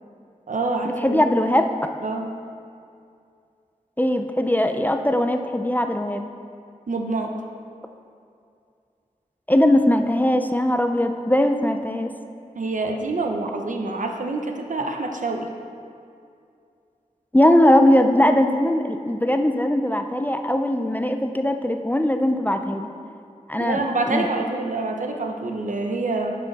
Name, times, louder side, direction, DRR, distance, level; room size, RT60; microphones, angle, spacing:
voice 1, 0.5-1.2 2.0-2.3 6.9-7.3 12.5-15.5 23.6-26.4, right 3 dB, 70° right, 3 dB, 0.7 m, -26 dB
voice 2, 1.0-1.7 4.0-6.3 9.5-12.1 17.3-22.9 23.5-24.3, left 1 dB, 15° left, 6 dB, 0.4 m, -20 dB
10.0 x 5.5 x 4.1 m, 2.4 s
wide cardioid pair, 65°, 14 cm